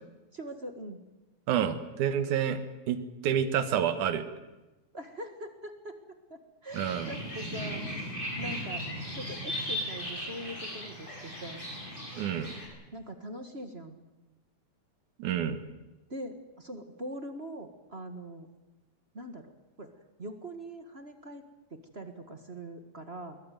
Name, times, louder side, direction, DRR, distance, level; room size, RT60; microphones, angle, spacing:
voice 1, 0.3-1.0 4.9-6.0 6.3-7.8 8.4-8.9 9.1-11.7 12.9-14.0 16.1-18.5 19.1-19.5 19.8-19.9 20.2-21.4 21.7-23.4, right 1 dB, 30° right, 7 dB, 1.2 m, -42 dB
voice 2, 1.5-2.6 2.9-4.3 6.7-7.1 12.2-12.5 15.2-15.6, right 9 dB, 75° right, 10 dB, 2.8 m, -28 dB
sound 1, 6.7-12.7, equal, 15° left, 7.9 m, -37 dB
22.0 x 20.0 x 9.3 m, 1.1 s
omnidirectional pair, 3.5 m